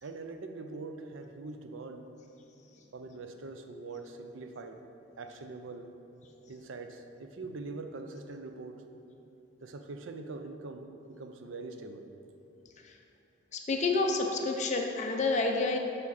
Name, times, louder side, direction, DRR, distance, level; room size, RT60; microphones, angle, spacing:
voice 1, 0.0-2.2 2.9-4.8 5.2-5.9 6.5-8.8 9.6-12.1, right 3 dB, 75° right, 6 dB, 0.5 m, -43 dB
voice 2, 13.5-15.8, left 3 dB, 35° left, 2 dB, 0.5 m, -29 dB
7.3 x 4.7 x 4.0 m, 2.8 s
head